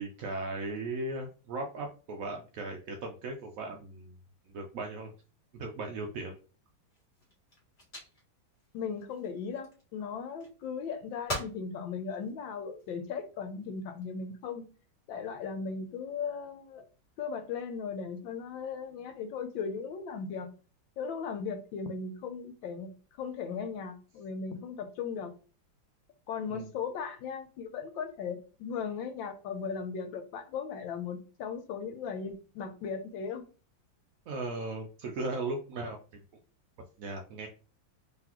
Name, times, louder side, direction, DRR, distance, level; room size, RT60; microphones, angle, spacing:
voice 1, 0.0-4.1 4.5-5.1 5.5-6.4 26.5-26.7 34.3-36.2 37.0-37.5, right 2 dB, 80° right, 0.7 m, -37 dB
sound 1, 6.8-9.9 10.4-11.0 11.3-11.6 12.2-12.9 13.6-14.0, left 1 dB, 25° left, 1.5 m, -42 dB
voice 2, 8.7-14.7 15.1-16.8 17.2-20.5 21.0-22.9 23.2-25.3 26.3-33.4, left 6 dB, 75° left, 1.4 m, -37 dB
3.9 x 3.3 x 2.9 m
omnidirectional pair, 2.1 m